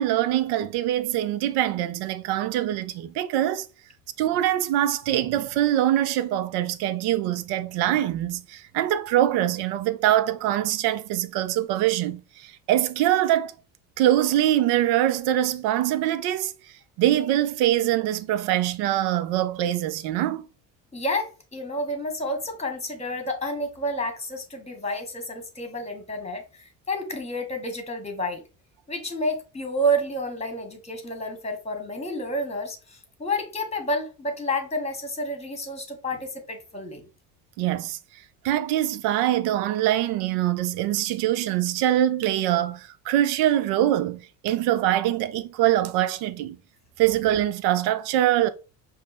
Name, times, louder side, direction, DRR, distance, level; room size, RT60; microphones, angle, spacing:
voice 1, 0.0-3.7 4.2-13.5 14.0-16.5 17.0-20.4 37.6-38.0 38.4-46.6 47.0-48.5, right 12 dB, 55° right, 0.6 m, -23 dB
voice 2, 20.9-28.4 28.9-37.0, equal, 15° left, 1.5 m, -30 dB
5.1 x 2.0 x 4.2 m
hypercardioid pair, 60°, 47 cm